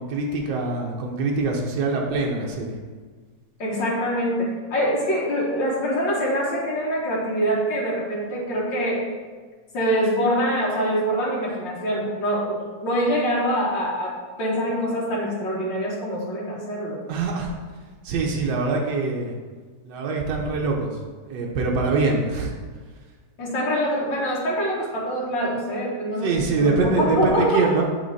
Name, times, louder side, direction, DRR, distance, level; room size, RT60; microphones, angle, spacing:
voice 1, 0.0-2.8 17.1-17.5 18.0-19.3 19.8-20.9 21.3-22.5 26.2-27.8, right 3 dB, 75° right, 0 dB, 1.5 m, -24 dB
voice 2, 3.6-9.0 9.7-17.0 23.4-27.7, equal, 85° left, -6 dB, 2.0 m, -24 dB
8.3 x 3.9 x 4.1 m, 1.5 s
omnidirectional pair, 2.0 m